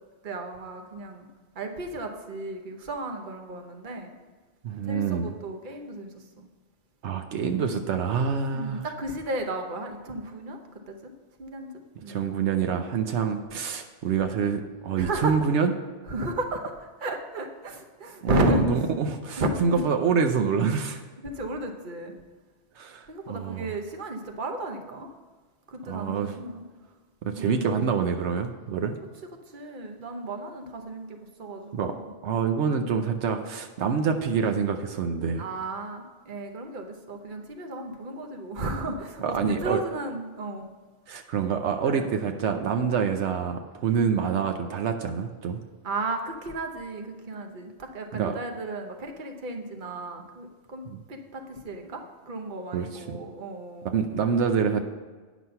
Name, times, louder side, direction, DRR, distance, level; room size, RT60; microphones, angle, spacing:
voice 1, 0.2-1.3 1.5-4.1 4.9-6.5 7.5-8.0 8.5-10.6 10.9-11.1 11.4-12.2 15.0-15.3 16.1-18.7 19.4-19.8 21.2-22.1 23.1-25.1 25.7-26.6 27.4-27.6 28.8-29.0 29.5-32.1 33.8-33.9 35.4-40.6 41.8-42.1 45.8-53.9, right 2 dB, 50° right, 4 dB, 1.1 m, -33 dB
voice 2, 4.6-5.4 7.0-8.8 12.0-15.7 18.2-21.0 22.8-23.7 25.9-26.4 27.2-29.0 31.7-31.9 32.2-35.5 39.2-39.8 41.1-45.6 48.1-48.4 50.9-51.0 52.7-53.2 53.8-54.8, right 6 dB, 80° right, 5 dB, 1.0 m, -26 dB
9.3 x 6.1 x 5.6 m, 1.4 s
omnidirectional pair, 1.1 m